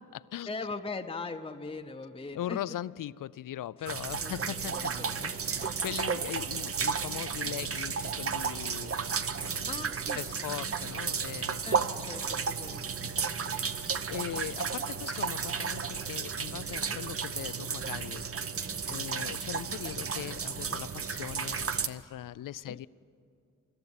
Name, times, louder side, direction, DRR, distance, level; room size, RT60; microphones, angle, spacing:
voice 1, 0.5-2.6 3.8-5.4 7.6-7.8 9.7-10.7 11.6-13.6 16.9-17.0 18.5-18.8 22.6-22.8, left 3 dB, 15° left, 0.7 m, -42 dB
voice 2, 2.3-5.0 5.4-9.8 10.2-11.9 13.2-13.3 13.5-18.3 18.5-22.9, left 12 dB, 80° left, 0.5 m, -40 dB
sound 1, 3.9-21.9, right 6 dB, 45° right, 0.8 m, -33 dB
25.0 x 13.5 x 9.7 m
wide cardioid pair, 125°, 32 cm